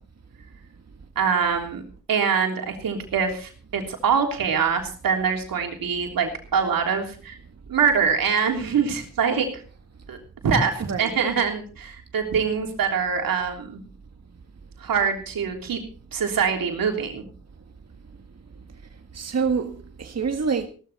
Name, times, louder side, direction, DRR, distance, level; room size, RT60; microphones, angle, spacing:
voice 1, 1.1-1.8 2.1-7.4 7.7-9.5 10.1-10.2 10.4-13.8 14.8-15.8 16.1-17.2, right 6 dB, 80° right, 3.4 m, -24 dB
voice 2, 10.8-11.3 19.1-20.7, right 5 dB, 50° right, 1.7 m, -27 dB
17.0 x 13.0 x 4.2 m
supercardioid pair, 45°, 34 cm